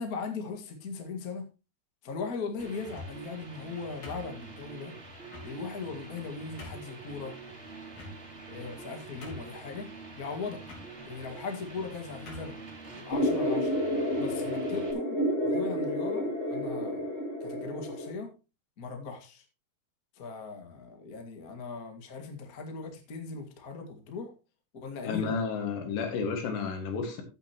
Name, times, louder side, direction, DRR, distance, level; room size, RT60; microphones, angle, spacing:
voice 1, 0.0-1.4 2.0-4.9 5.4-7.3 8.5-9.9 10.2-10.6 11.0-12.6 12.9-13.7 14.2-17.1 17.4-18.3 18.8-19.4 20.1-24.3 24.7-25.3, left 4 dB, 45° left, 4 dB, 1.2 m, -39 dB
sound 1, 2.6-14.9, right 3 dB, 20° right, 2.0 m, -46 dB
sound 2, 2.8-3.3 4.0-4.7 5.3-5.5 6.1-6.2 6.6-6.9 7.9-8.5 8.8-8.9 9.2-9.7 10.6-10.9 11.7-11.9 12.3-12.6, left 2 dB, 60° left, 5.4 m, -45 dB
sound 3, 13.1-18.1, equal, 25° left, 1.8 m, -30 dB
voice 2, 25.0-27.2, left 5 dB, 80° left, 5 dB, 4.0 m, -31 dB
14.5 x 8.0 x 3.0 m, 0.29 s
omnidirectional pair, 4.9 m